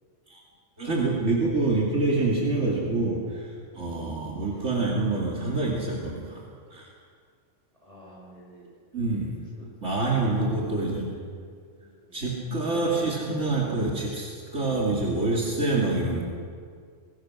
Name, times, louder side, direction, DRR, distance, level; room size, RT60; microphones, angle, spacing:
voice 1, 0.8-6.4 6.7-6.9 8.9-9.3 9.8-11.1 12.1-16.2, right 2 dB, 70° right, -3 dB, 3.0 m, -26 dB
voice 2, 4.3-4.7 7.8-8.8 9.3-9.7 10.4-11.3 11.7-12.2, left 1 dB, 25° right, -4 dB, 7.0 m, -47 dB
22.0 x 20.0 x 6.3 m, 2.1 s
omnidirectional pair, 1.3 m